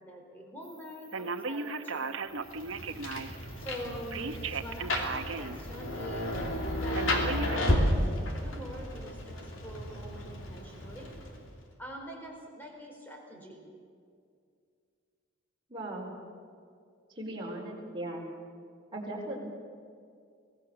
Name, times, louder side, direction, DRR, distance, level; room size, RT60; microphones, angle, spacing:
voice 1, 0.0-2.3 3.6-6.3 6.8-11.1 11.8-13.6, equal, 10° left, 0 dB, 4.3 m, -44 dB
Telephone, 1.1-3.4 4.1-5.6 6.0-6.1 6.9-7.6, right 4 dB, 80° right, 1.0 m, -35 dB
Rain, 2.5-11.6, left 1 dB, 80° left, 3.0 m, -32 dB
voice 2, 15.7-16.1 17.1-18.2 18.9-19.5, right 1 dB, 25° right, -3 dB, 4.7 m, -38 dB
24.5 x 18.0 x 6.9 m, 2.3 s
head